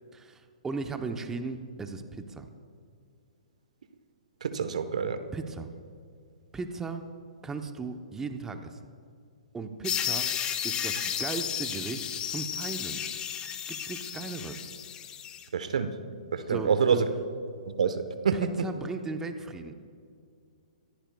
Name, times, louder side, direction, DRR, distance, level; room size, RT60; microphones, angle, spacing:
voice 1, 0.1-2.5 5.3-5.7 6.5-7.0 7.4-8.8 9.5-10.4 10.6-13.0 13.7-14.7 16.5-17.0 18.3-19.7, right 4 dB, 10° right, 6 dB, 0.9 m, -37 dB
voice 2, 4.4-5.2 15.5-15.9 16.3-17.1 17.7-18.5, right 6 dB, 70° right, 10 dB, 1.1 m, -27 dB
sound 1, 9.8-15.4, left 9 dB, 20° left, 1.0 m, -33 dB
25.5 x 14.5 x 2.3 m, 2.3 s
hypercardioid pair, 125°, 4 cm